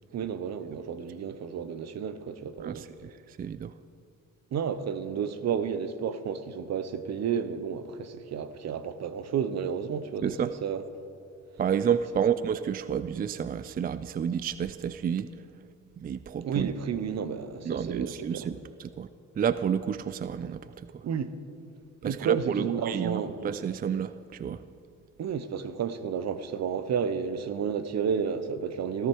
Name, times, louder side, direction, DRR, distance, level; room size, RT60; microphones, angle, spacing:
voice 1, 0.1-2.9 4.5-10.8 12.2-12.3 16.4-18.5 21.0-21.4 22.0-23.5 25.2-29.1, right 7 dB, 60° right, 0.9 m, -31 dB
voice 2, 2.6-3.7 10.2-10.5 11.6-15.3 16.0-16.7 17.7-19.1 19.4-21.0 22.0-24.6, right 8 dB, 30° right, 0.4 m, -30 dB
17.0 x 14.0 x 4.7 m
cardioid pair, 90°, 30 cm